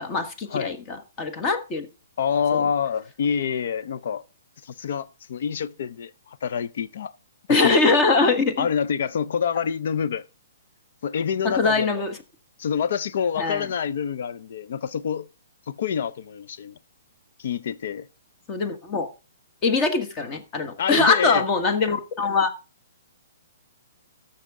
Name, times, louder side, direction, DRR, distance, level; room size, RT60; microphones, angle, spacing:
voice 1, 0.0-1.9 2.5-2.6 7.5-8.7 11.4-12.1 13.4-13.7 18.5-19.1 19.6-22.5, left 3 dB, 25° left, 1.4 m, -22 dB
voice 2, 2.2-4.2 4.6-6.1 6.4-7.1 7.6-7.8 8.6-10.2 11.0-12.0 12.6-15.3 15.7-16.7 17.4-18.1 20.8-21.4, left 7 dB, 60° left, 0.5 m, -26 dB
13.5 x 6.6 x 3.6 m
hypercardioid pair, 150°, 0 cm